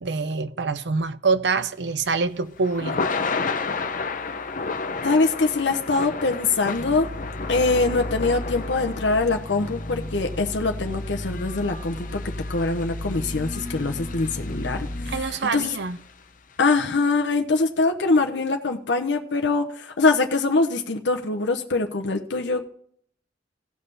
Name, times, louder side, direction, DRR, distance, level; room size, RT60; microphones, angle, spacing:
voice 1, 0.0-3.0 15.1-16.0, right 4 dB, 70° right, 0.6 m, -25 dB
Thunder / Rain, 1.8-16.1, left 4 dB, 50° left, 0.8 m, -33 dB
voice 2, 5.0-7.1 7.5-12.2 12.5-15.3 15.5-15.7 16.6-22.7, left 3 dB, 85° left, 0.9 m, -23 dB
sound 1, 6.8-15.2, left 1 dB, 30° left, 2.0 m, -34 dB
17.0 x 5.6 x 4.0 m
head